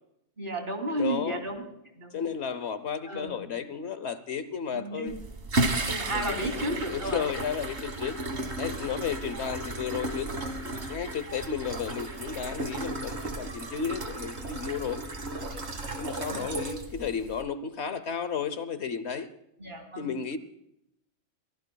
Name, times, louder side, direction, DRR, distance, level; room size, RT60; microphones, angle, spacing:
voice 1, 0.4-1.7 2.0-2.2 3.1-3.5 4.7-5.1 5.8-7.2 15.4-15.5 16.2-16.6 19.6-20.1, right 1 dB, 45° right, 3 dB, 3.2 m, -33 dB
voice 2, 1.0-1.4 2.1-5.1 6.1-6.7 6.9-8.2 8.6-10.3 10.9-15.0 15.9-19.3 20.0-20.4, left 7 dB, 65° left, 12 dB, 1.2 m, -33 dB
sound 1, 5.1-17.4, right 2 dB, 65° right, 2.0 m, -34 dB
sound 2, 6.4-13.9, right 1 dB, 10° left, 4.4 m, -51 dB
24.0 x 16.0 x 2.3 m, 0.79 s
omnidirectional pair, 1.2 m